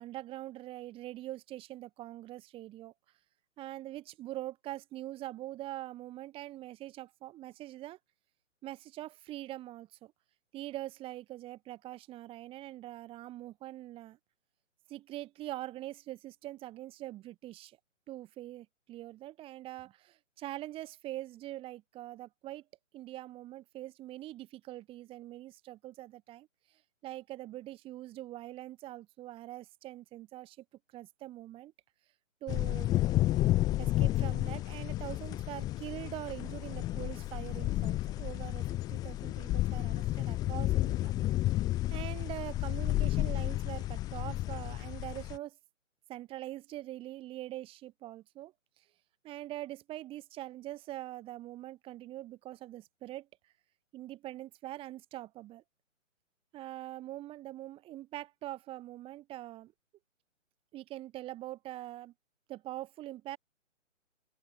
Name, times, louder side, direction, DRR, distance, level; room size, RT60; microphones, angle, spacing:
voice 1, 0.0-2.9 3.6-8.0 8.6-10.1 10.5-14.2 14.9-17.8 18.1-22.6 22.9-30.6 30.9-31.7 32.4-33.0 33.8-41.1 41.9-45.6 46.1-48.9 49.2-53.5 53.9-55.6 56.5-59.7 60.7-62.1 62.5-63.4, right 15 dB, 15° right, 5.5 m, -43 dB
sound 1, 32.5-45.4, left 15 dB, 10° left, 1.4 m, -31 dB
open air
figure-of-eight pair, 140°, 39 cm